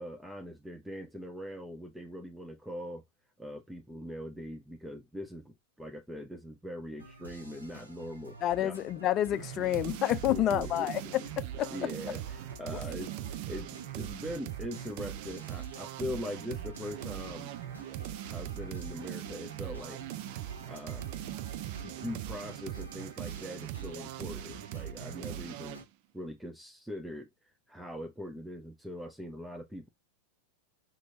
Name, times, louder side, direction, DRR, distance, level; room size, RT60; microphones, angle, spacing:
voice 1, 0.0-3.0 3.4-8.8 10.3-11.2 11.5-17.5 18.3-20.0 20.7-21.1 21.8-25.8 26.1-27.3 27.7-29.9, equal, 5° right, 0.9 m, -42 dB
sound 1, 7.0-25.8, right 1 dB, 85° right, 3.0 m, -50 dB
voice 2, 8.4-11.7, left 13 dB, 35° left, 0.6 m, -29 dB
sound 2, 9.3-25.8, right 13 dB, 45° right, 0.6 m, -40 dB
6.0 x 5.6 x 2.9 m
figure-of-eight pair, 90°, 0 cm